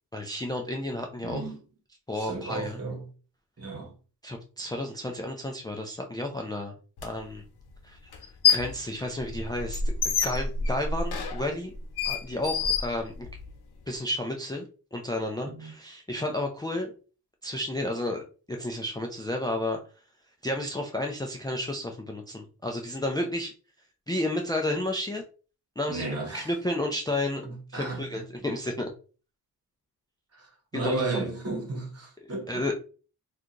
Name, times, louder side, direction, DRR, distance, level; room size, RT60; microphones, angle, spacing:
voice 1, 0.1-1.4 2.1-2.8 4.2-6.7 7.0-7.4 7.8-11.7 12.1-13.3 13.9-16.9 17.4-18.2 18.5-19.8 20.4-23.5 24.1-25.2 25.8-26.0 26.3-27.4 27.7-28.9 30.7-30.9 32.5-32.7, left 1 dB, 10° left, 0.4 m, -32 dB
voice 2, 1.2-1.6 2.1-3.1 3.6-4.0 15.4-15.7 25.9-26.5 27.4-28.5 30.3-32.6, right 3 dB, 40° right, 1.2 m, -34 dB
sound 1, 7.0-7.1 8.1-8.8 9.2-13.5, left 5 dB, 85° left, 0.8 m, -27 dB
2.8 x 2.4 x 3.7 m
cardioid pair, 95°, 37 cm